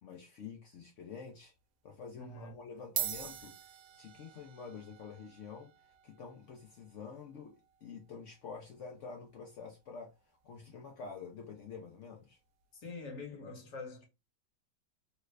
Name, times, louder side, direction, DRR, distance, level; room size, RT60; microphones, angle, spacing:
voice 1, 0.0-1.5 1.8-3.5 4.0-5.7 6.0-12.4, left 5 dB, 75° left, 0.6 m, -48 dB
sound 1, 1.3-1.6 2.4-2.5 2.8-11.5, right 10 dB, 75° right, 1.1 m, -46 dB
voice 2, 2.2-2.5 12.7-14.1, left 3 dB, 50° left, 1.3 m, -45 dB
3.2 x 2.4 x 3.2 m
omnidirectional pair, 1.9 m